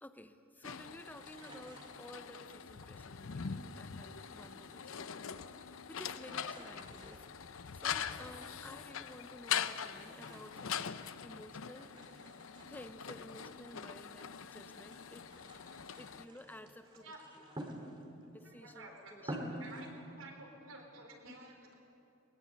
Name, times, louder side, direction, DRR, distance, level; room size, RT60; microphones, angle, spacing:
voice 1, 0.0-12.4 12.7-15.3 16.0-17.1 18.2-19.5, left 1 dB, 10° left, 9 dB, 0.8 m, -54 dB
sound 1, 0.6-16.2, left 8 dB, 70° left, 0.7 m, -43 dB
sound 2, 1.2-2.5 3.4-4.9 5.1-5.7 6.0-9.1 9.8-11.4 11.8-14.4 14.8-18.3 18.8-18.9 19.2-19.9, right 1 dB, 20° right, 2.4 m, -50 dB
voice 2, 18.4-21.7, right 2 dB, 70° right, 2 dB, 4.3 m, -52 dB
22.5 x 21.0 x 8.3 m, 2.7 s
head